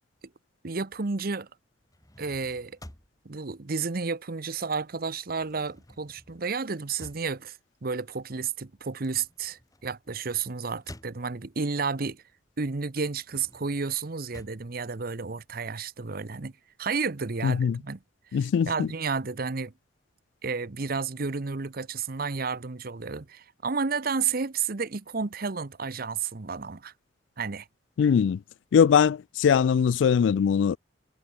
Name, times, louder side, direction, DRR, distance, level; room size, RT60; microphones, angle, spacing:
voice 1, 0.6-1.5 2.2-2.8 3.2-7.6 7.8-12.2 12.6-16.5 16.8-18.0 18.7-19.7 20.4-26.9 27.4-27.7, right 5 dB, 55° right, 0.9 m, -31 dB
sound 1, 1.8-4.6 4.9-11.7 12.2-15.7, left 1 dB, 20° left, 3.0 m, -52 dB
voice 2, 17.4-17.8 18.3-18.9 28.0-28.4 28.7-30.8, left 7 dB, 85° left, 0.3 m, -21 dB
head